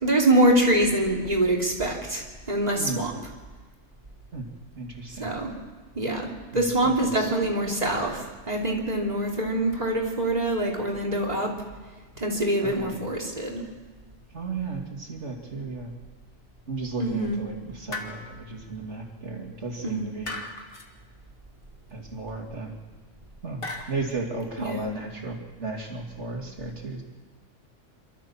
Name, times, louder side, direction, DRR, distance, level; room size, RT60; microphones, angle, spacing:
voice 1, 0.0-3.1 5.2-5.5 5.9-11.5 12.2-13.6 17.0-17.4 19.8-20.1 24.6-24.9, right 1 dB, 35° right, -1 dB, 3.2 m, -25 dB
voice 2, 2.8-3.1 4.3-4.5 4.8-5.3 6.5-7.3 12.6-13.0 14.3-15.9 16.7-20.4 21.9-22.7 23.4-27.0, right 3 dB, 65° right, 1 dB, 2.8 m, -34 dB
sound 1, 17.9-18.5 20.3-20.9 23.6-24.1, left 2 dB, 50° left, 2.0 m, -36 dB
27.5 x 13.0 x 7.2 m, 1.3 s
omnidirectional pair, 1.3 m